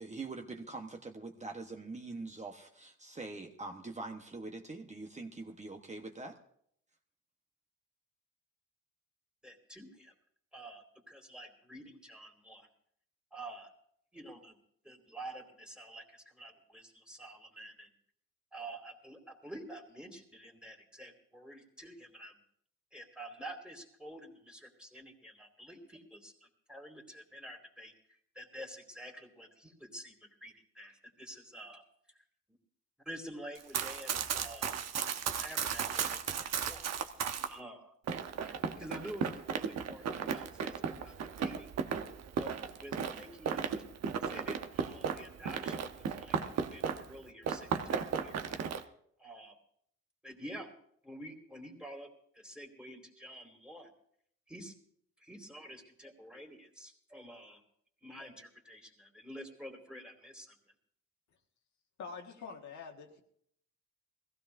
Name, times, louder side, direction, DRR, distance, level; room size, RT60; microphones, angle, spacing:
voice 1, 0.0-6.4, right 3 dB, 25° right, 3 dB, 1.1 m, -44 dB
voice 2, 9.4-10.1 10.5-12.7 13.3-13.7 14.1-14.6 14.8-17.9 18.5-22.3 22.9-27.9 28.3-31.8 33.1-34.8 35.3-36.9 37.4-37.9 38.4-41.7 42.4-42.5 42.8-43.8 44.2-48.6 49.2-49.5 50.2-50.7 51.0-52.1 52.3-53.9 54.5-54.7 55.2-57.6 58.0-60.5, right 1 dB, 5° right, 3 dB, 2.6 m, -49 dB
Run, 33.5-37.5 38.1-47.2 47.4-48.8, right 7 dB, 60° right, 1.0 m, -35 dB
voice 3, 62.0-63.2, left 5 dB, 70° left, 2 dB, 1.7 m, -45 dB
21.0 x 15.5 x 2.6 m, 0.67 s
cardioid pair, 90°, 30 cm